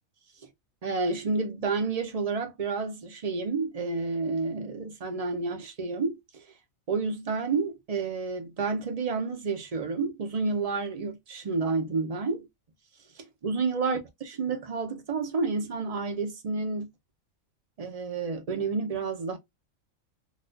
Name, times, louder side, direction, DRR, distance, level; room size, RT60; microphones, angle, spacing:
voice 1, 0.8-6.2 6.9-12.5 13.4-14.0 14.3-16.9 17.8-19.4, right 4 dB, 45° right, 0.5 m, -30 dB
4.0 x 2.3 x 2.5 m
omnidirectional pair, 1.4 m